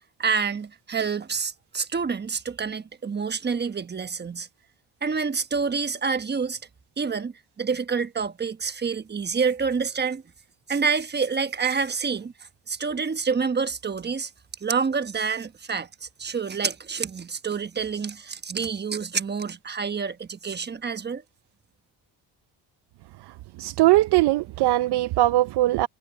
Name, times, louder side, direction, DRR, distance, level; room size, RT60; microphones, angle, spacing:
voice 1, 0.2-4.5 5.0-6.6 7.0-10.2 10.7-12.3 12.7-14.3 14.6-21.2, right 5 dB, 25° right, 1.1 m, -27 dB
voice 2, 23.6-25.9, right 16 dB, 65° right, 0.6 m, -20 dB
cardioid pair, 110°, 42 cm